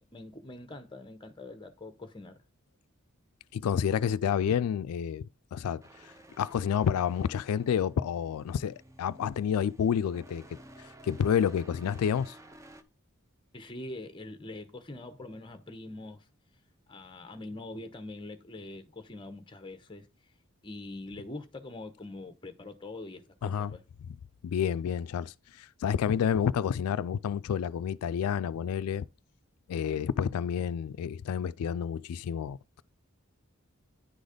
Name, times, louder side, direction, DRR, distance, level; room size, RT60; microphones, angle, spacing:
voice 1, 0.1-2.4 13.5-16.2 16.9-20.1 20.6-23.8, left 2 dB, 20° left, 0.8 m, -43 dB
voice 2, 3.5-5.2 5.5-5.8 6.4-10.4 11.0-12.4 23.4-23.7 24.0-24.2 24.4-29.1 29.7-32.8, left 8 dB, 85° left, 0.3 m, -29 dB
sound 1, 5.8-12.8, right 1 dB, 15° right, 0.5 m, -53 dB
10.0 x 4.0 x 5.0 m
head